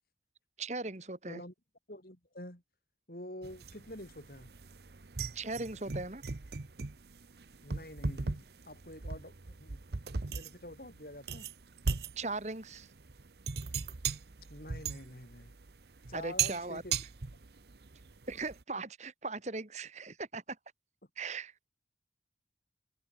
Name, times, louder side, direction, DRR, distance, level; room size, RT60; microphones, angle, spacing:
voice 1, 0.6-1.4 5.3-6.2 12.2-12.9 16.1-16.8 18.3-20.6 21.2-21.5, right 3 dB, 40° right, 1.9 m, -38 dB
voice 2, 1.9-2.6 3.1-4.5 7.6-9.8 10.3-11.5 14.5-15.5 16.1-17.0, left 1 dB, 55° left, 5.8 m, -47 dB
sound 1, 3.4-18.6, right 5 dB, 65° right, 0.9 m, -38 dB
head